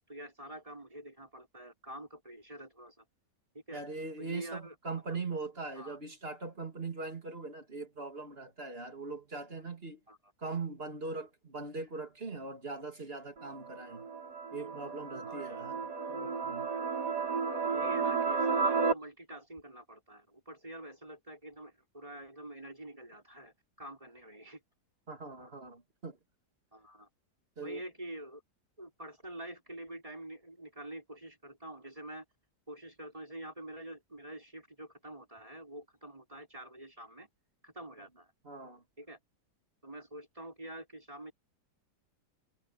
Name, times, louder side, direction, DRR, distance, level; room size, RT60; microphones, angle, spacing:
voice 1, 0.1-3.0 3.5-3.8 4.2-4.8 5.7-6.0 10.1-10.2 15.3-15.6 16.8-17.0 17.6-24.6 25.4-25.5 26.7-27.1 27.6-28.4 28.8-32.3 32.7-37.3 37.6-38.3 39.0-39.2 39.8-41.3, right 1 dB, 20° right, 5.5 m, -46 dB
voice 2, 3.7-10.0 10.4-14.1 14.5-16.7 25.1-26.2 27.6-27.8 38.4-38.8, right 3 dB, 35° right, 2.8 m, -41 dB
sound 1, 13.4-18.9, right 5 dB, 70° right, 5.2 m, -33 dB
omnidirectional pair, 1.8 m